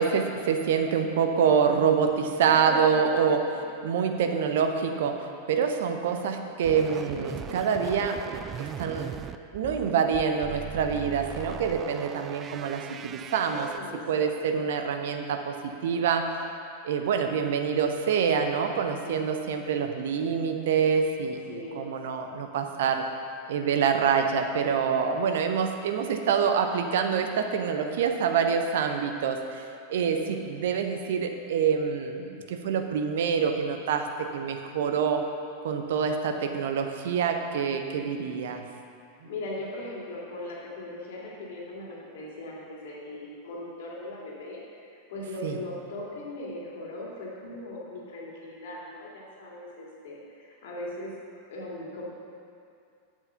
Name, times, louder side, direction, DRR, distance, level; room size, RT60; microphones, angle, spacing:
voice 1, 0.0-3.4 3.8-9.1 9.5-16.3 16.8-23.0 23.5-34.1 34.3-35.2 35.6-38.6 45.4-45.6, right 6 dB, 55° right, 5 dB, 0.7 m, -26 dB
voice 2, 2.5-3.0 3.5-3.6 13.7-14.5 19.0-19.2 21.2-21.9 30.0-30.5 39.3-51.1 51.5-52.0, left 2 dB, 55° left, -4 dB, 2.2 m, -39 dB
sound 1, 6.6-13.8, right 8 dB, 25° right, 0.3 m, -39 dB
8.0 x 7.2 x 5.7 m, 2.4 s
figure-of-eight pair, 90°, 0 cm